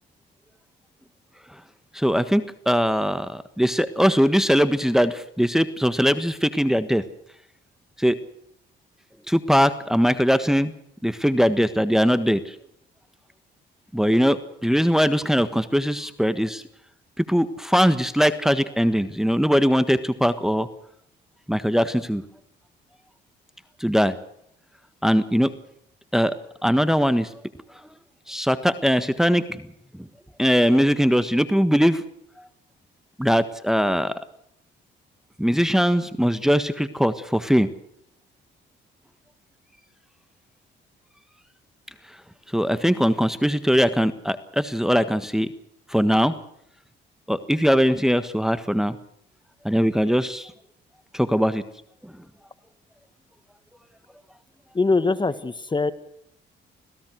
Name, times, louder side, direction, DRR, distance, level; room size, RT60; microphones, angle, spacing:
voice 1, 1.9-7.0 8.0-8.2 9.3-10.7 11.0-12.5 13.9-16.6 17.2-20.7 21.5-22.2 23.8-24.1 25.0-25.5 26.1-26.4 26.6-27.3 28.3-29.4 30.4-32.0 33.2-34.2 35.4-37.7 42.5-45.5 45.9-46.3 47.3-49.0 49.6-50.5 51.1-51.6 52.0-52.1, equal, ahead, 11 dB, 1.4 m, -21 dB
voice 2, 54.7-55.9, left 3 dB, 25° left, 13 dB, 1.5 m, -22 dB
26.5 x 16.5 x 6.4 m, 0.72 s
cardioid pair, 90°, 20 cm